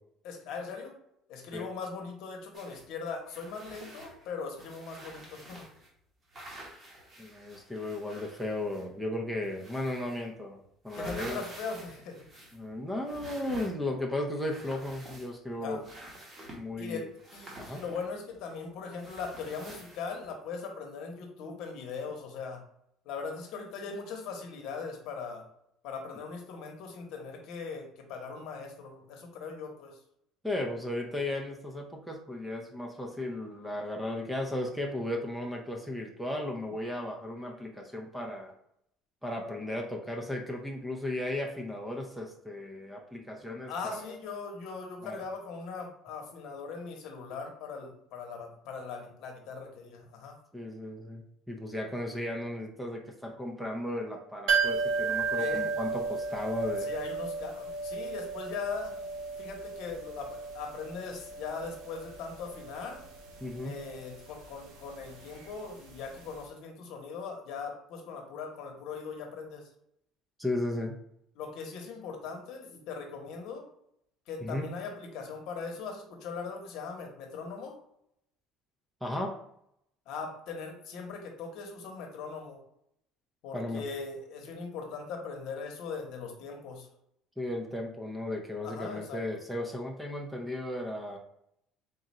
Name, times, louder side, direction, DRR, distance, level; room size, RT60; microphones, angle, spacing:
voice 1, 0.2-0.9 1.3-5.7 10.9-12.2 15.6-15.8 16.8-17.1 17.3-22.6 23.0-25.4 25.8-30.0 43.7-50.4 55.3-55.7 56.8-58.9 59.4-63.0 63.6-69.7 71.4-73.7 74.3-77.8 80.1-82.6 83.4-86.9 88.6-89.2, left 5 dB, 60° left, 3 dB, 0.9 m, -40 dB
sound 1, 2.5-2.8 3.3-5.9 6.3-9.0 9.4-10.3 10.6-12.7 13.0-14.0 14.3-15.5 15.8-16.6 17.2-18.5 19.0-20.3, right 1 dB, 20° right, 1.0 m, -48 dB
voice 2, 7.2-10.6 10.8-11.4 12.5-15.8 16.5-17.1 17.6-17.8 30.4-38.5 39.2-44.2 45.0-45.2 50.5-56.9 63.4-63.8 70.4-70.9 74.4-74.7 79.0-79.4 83.5-83.8 87.4-91.2, left 1 dB, 5° right, 1 dB, 0.5 m, -35 dB
sound 2, 54.5-66.1 66.3-66.4, right 4 dB, 80° right, 1.0 m, -34 dB
3.8 x 2.3 x 4.1 m, 0.74 s
cardioid pair, 165°, 0 cm